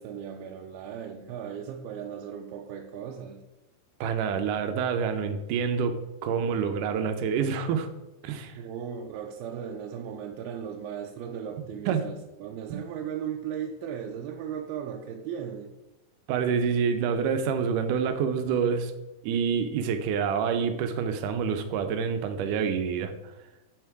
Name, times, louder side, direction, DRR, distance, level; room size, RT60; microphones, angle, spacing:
voice 1, 0.0-3.4 8.6-15.7, right 8 dB, 90° right, 2 dB, 2.6 m, -37 dB
voice 2, 4.0-6.0 6.2-7.9 8.2-8.5 11.9-12.1 12.7-12.9 16.3-18.9 19.2-23.1, right 6 dB, 75° right, 8 dB, 2.1 m, -27 dB
9.4 x 5.3 x 4.7 m, 0.99 s
omnidirectional pair, 4.3 m